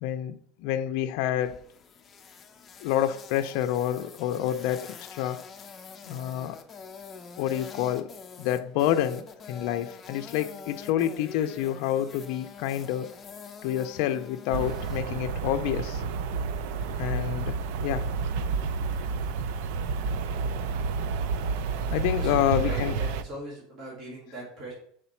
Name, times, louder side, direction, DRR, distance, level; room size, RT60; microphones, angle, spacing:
voice 1, 0.0-1.6 2.8-5.5 6.1-6.6 7.4-13.2 13.6-16.0 17.0-18.1 21.9-23.0, left 11 dB, 60° left, 0.5 m, -28 dB
sound 1, 1.4-15.0, left 5 dB, 20° left, 0.6 m, -46 dB
sound 2, 14.5-23.2, right 5 dB, 65° right, 0.5 m, -30 dB
voice 2, 22.1-24.7, right 1 dB, 40° right, 2.7 m, -40 dB
5.0 x 4.1 x 5.6 m
supercardioid pair, 155°, 0 cm